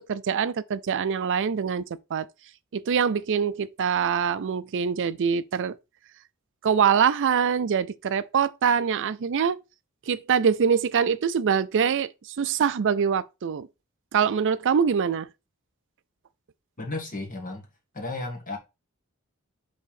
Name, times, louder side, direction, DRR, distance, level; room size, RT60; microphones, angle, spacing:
voice 1, 0.0-2.3 2.7-5.8 6.6-9.6 10.1-13.7 14.1-15.3, right 7 dB, 60° right, 0.4 m, -24 dB
voice 2, 16.8-17.7 17.9-18.6, left 2 dB, 40° left, 1.9 m, -33 dB
5.5 x 3.6 x 5.7 m
head